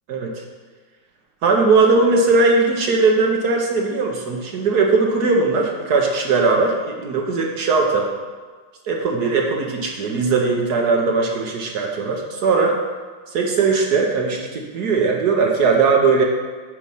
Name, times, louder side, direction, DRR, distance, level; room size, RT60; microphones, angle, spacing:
voice 1, 0.1-0.4 1.4-8.1 8.9-12.8 13.3-16.2, right 4 dB, 60° right, 1 dB, 1.2 m, -19 dB
8.5 x 4.8 x 5.4 m, 1.5 s
omnidirectional pair, 2.2 m